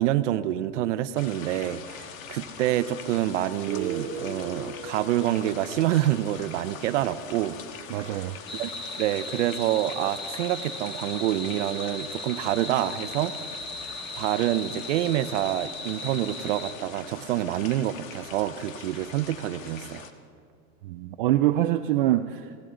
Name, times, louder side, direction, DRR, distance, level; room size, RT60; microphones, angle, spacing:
voice 1, 0.0-7.6 7.9-8.1 8.5-8.7 9.0-13.3 14.1-20.1, right 13 dB, 65° right, 12 dB, 0.8 m, -27 dB
sound 1, 1.2-20.1, left 7 dB, 80° left, 1.5 m, -43 dB
Guitar, 3.7-7.2, right 5 dB, 20° right, 0.8 m, -37 dB
voice 2, 7.9-8.4 20.8-22.6, right 14 dB, 40° right, 9 dB, 0.4 m, -25 dB
sound 2, 8.5-16.7, left 2 dB, 10° left, 0.9 m, -38 dB
21.5 x 16.5 x 3.8 m, 2.5 s
supercardioid pair, 160°, 40 cm